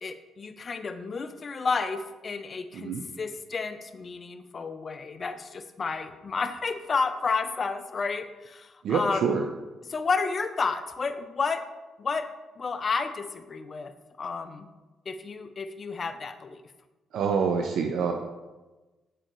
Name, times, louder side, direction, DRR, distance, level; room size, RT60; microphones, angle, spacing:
voice 1, 0.0-9.3 9.9-11.6 12.0-12.3 12.6-13.9 14.2-14.7 15.1-16.6, left 4 dB, 40° left, 9 dB, 0.4 m, -31 dB
voice 2, 2.7-3.0 8.8-9.5 17.1-18.1, right 6 dB, 75° right, 4 dB, 0.4 m, -26 dB
6.4 x 5.0 x 3.0 m, 1.2 s
cardioid pair, 90°, 0 cm